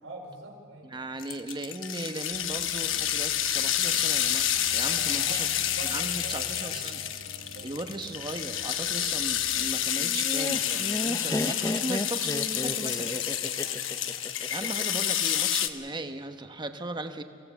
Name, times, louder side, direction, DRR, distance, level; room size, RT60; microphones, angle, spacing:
voice 1, 0.0-0.9 4.9-5.4 5.8-6.9 11.3-11.5 13.5-14.2, right 2 dB, 80° right, 0 dB, 4.8 m, -44 dB
voice 2, 0.8-5.5 5.9-7.0 7.6-13.1 14.5-17.2, right 2 dB, 25° right, 7 dB, 1.0 m, -37 dB
sound 1, 1.2-15.7, left 10 dB, 75° left, 1.0 m, -29 dB
sound 2, 2.3-9.7, right 2 dB, 65° right, 1.5 m, -48 dB
Laughter, 10.0-15.0, left 1 dB, 15° left, 0.7 m, -33 dB
27.0 x 16.5 x 7.0 m, 2.3 s
head